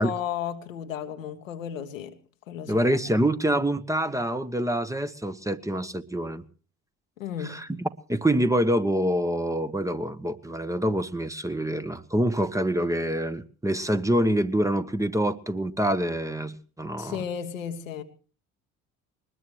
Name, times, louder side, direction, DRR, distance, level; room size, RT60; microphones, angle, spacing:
voice 1, 0.0-2.1 2.5-3.1 7.2-7.6 17.0-18.0, left 9 dB, 90° left, 1.1 m, -34 dB
voice 2, 2.7-6.4 7.4-7.7 8.1-17.2, right 1 dB, 10° right, 1.0 m, -26 dB
21.0 x 20.0 x 3.1 m
hypercardioid pair, 50°, 38 cm